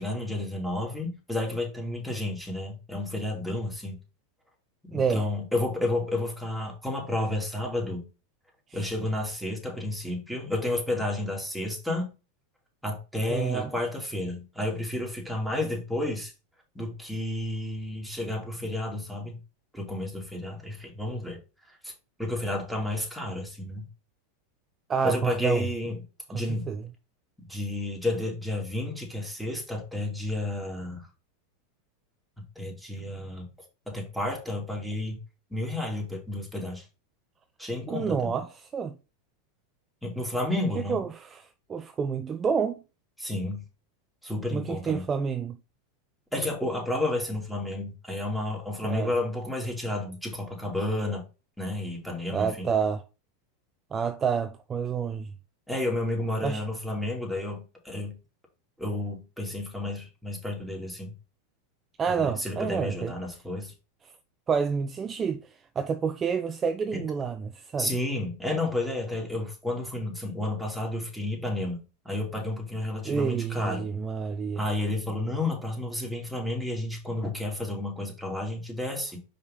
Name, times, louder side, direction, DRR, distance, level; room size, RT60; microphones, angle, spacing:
voice 1, 0.0-4.0 4.8-8.1 8.7-12.1 12.8-16.3 16.7-19.4 19.7-21.4 21.8-21.9 22.2-23.9 25.0-26.0 26.3-26.7 27.5-31.1 32.5-33.5 33.9-35.2 35.5-36.9 37.6-38.3 40.0-41.0 43.2-43.6 44.2-45.1 46.3-51.2 51.6-52.7 55.7-58.2 58.8-61.1 62.1-63.7 66.9-67.0 67.8-73.9 74.5-79.2, left 1 dB, ahead, 2.7 m, -31 dB
voice 2, 4.9-5.2 8.7-8.9 13.3-13.7 24.9-25.7 26.3-26.8 37.9-38.9 40.9-42.8 44.5-45.6 48.9-49.1 52.3-53.0 53.9-55.3 56.4-56.6 62.0-63.1 64.5-67.9 73.0-74.6, right 6 dB, 25° right, 0.5 m, -29 dB
5.4 x 5.0 x 3.8 m
hypercardioid pair, 110°, 0 cm